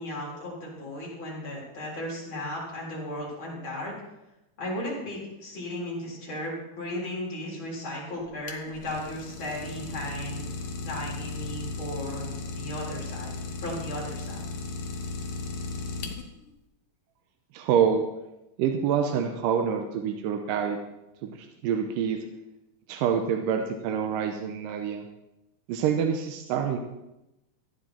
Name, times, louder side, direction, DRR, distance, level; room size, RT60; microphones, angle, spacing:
voice 1, 0.0-3.9 4.6-10.5 10.8-13.3 13.6-14.5, left 1 dB, 35° left, -4 dB, 4.4 m, -35 dB
Idling, 8.2-16.5, left 3 dB, 65° left, 1.3 m, -36 dB
voice 2, 17.5-18.0 18.6-20.8 21.2-21.4 21.6-22.2 22.9-25.0 25.7-26.8, right 7 dB, 85° right, 4 dB, 2.5 m, -26 dB
15.0 x 9.8 x 4.4 m, 0.94 s
omnidirectional pair, 3.8 m